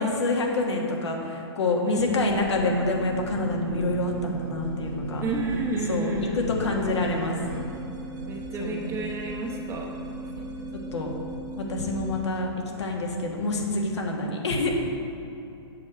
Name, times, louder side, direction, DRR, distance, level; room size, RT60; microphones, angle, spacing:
voice 1, 0.0-5.2 5.9-7.4 8.6-8.9 10.4-10.5 10.9-11.1 11.6-12.5 12.8-14.8, left 2 dB, 75° left, 0 dB, 1.6 m, -27 dB
voice 2, 1.9-2.2 5.2-6.4 8.3-9.9, right 2 dB, 20° right, 0 dB, 1.0 m, -30 dB
sound 1, 2.2-12.2, right 1 dB, 45° right, 1.3 m, -36 dB
7.5 x 6.0 x 5.2 m, 2.7 s
hypercardioid pair, 130°, 14 cm